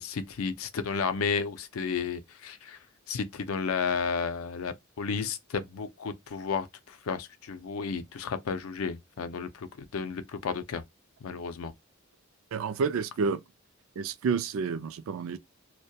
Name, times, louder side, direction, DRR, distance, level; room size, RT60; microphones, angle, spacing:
voice 1, 0.0-2.8 3.1-10.8 11.2-11.7, left 5 dB, 85° left, 0.4 m, -32 dB
voice 2, 12.5-13.4 14.0-15.4, right 5 dB, 70° right, 0.4 m, -29 dB
2.2 x 2.1 x 2.7 m
head